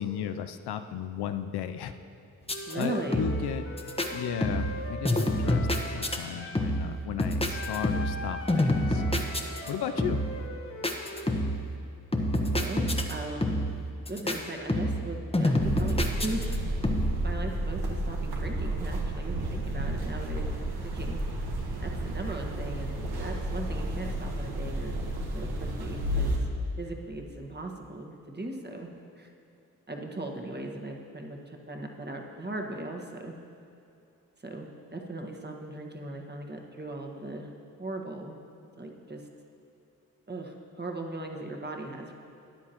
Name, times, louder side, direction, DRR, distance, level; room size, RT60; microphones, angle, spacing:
voice 1, 0.0-1.9 2.7-3.6 4.1-5.7 5.9-9.0 9.7-10.2, left 9 dB, 80° left, 9 dB, 0.6 m, -35 dB
sound 1, 2.4-2.8 3.1-3.5 3.8-4.1 4.4-4.8 5.0-6.2 6.5-6.9 7.2-8.2 8.5-9.7 10.0-10.4 10.8-11.6 12.1-13.1 13.4-13.8 14.1-14.4 14.7-15.1 15.3-16.6 16.8-17.2, left 1 dB, 15° left, 1.1 m, -27 dB
Wind instrument woodwind instrument, 2.5-6.7 7.5-11.4, left 2 dB, 35° left, 1.3 m, -41 dB
voice 2, 2.7-3.3 4.1-4.2 12.5-13.7 14.1-16.7 17.2-20.5 20.8-21.5 21.8-25.0 25.3-26.4 26.8-28.9 29.2-29.3 29.9-33.3 34.4-37.5 37.8-38.4 38.8-39.3 40.3-42.1, right 2 dB, 25° right, 2 dB, 1.5 m, -38 dB
sound 2, 15.6-26.4, right 1 dB, 75° right, 1.4 m, -32 dB
13.0 x 9.7 x 3.0 m, 2.7 s
supercardioid pair, 45°, 39 cm